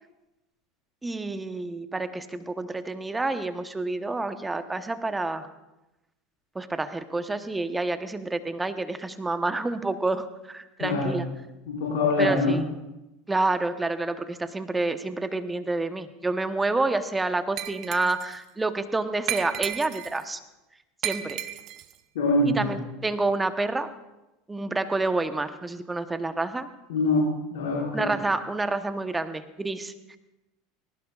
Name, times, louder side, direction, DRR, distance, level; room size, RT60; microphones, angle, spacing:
voice 1, 1.0-5.5 6.5-11.3 12.2-12.6 13.3-20.4 21.0-21.4 22.5-23.9 24.5-26.7 27.9-30.2, right 2 dB, 15° right, 9 dB, 1.0 m, -28 dB
voice 2, 10.8-11.1 11.7-12.5 22.2-22.7 26.9-28.1, left 2 dB, 80° left, -6 dB, 5.2 m, -24 dB
Glass, 17.6-18.4 19.3-20.2 21.0-21.9, right 12 dB, 50° right, 0.8 m, -33 dB
19.5 x 17.0 x 2.4 m, 0.98 s
hypercardioid pair, 95°, 0 cm